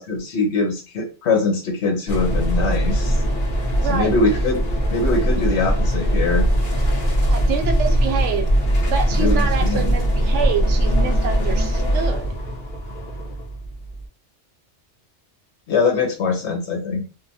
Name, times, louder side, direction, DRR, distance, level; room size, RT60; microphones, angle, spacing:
voice 1, 0.0-3.2 3.8-4.6 4.9-6.4 9.2-10.0 15.7-17.0, left 3 dB, 75° left, 3 dB, 1.1 m, -22 dB
sound 1, 2.1-14.1, equal, 50° left, 0.9 m, -21 dB
voice 2, 3.8-4.1 7.3-8.5 8.9-12.3, right 7 dB, 85° right, 6 dB, 0.9 m, -26 dB
2.9 x 2.1 x 2.6 m, 0.33 s
omnidirectional pair, 1.2 m